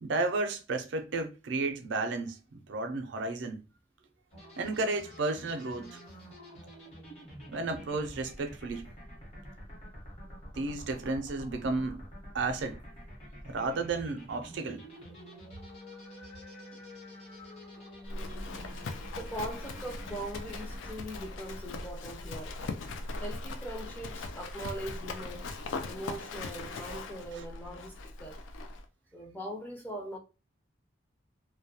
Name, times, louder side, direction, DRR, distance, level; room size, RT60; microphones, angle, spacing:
voice 1, 0.0-3.6 4.6-6.0 7.5-8.9 10.6-12.0 12.3-12.8 13.4-14.8 27.3-27.4, right 3 dB, 70° right, 0.4 m, -33 dB
sound 1, 4.3-21.0, equal, 30° left, 0.9 m, -48 dB
Livestock farm animals working animals, 18.1-28.8, left 3 dB, 80° left, 0.4 m, -40 dB
voice 2, 19.2-22.6 23.2-25.5 25.9-28.4 29.1-30.2, right 1 dB, 10° left, 0.4 m, -41 dB
2.2 x 2.1 x 2.7 m
head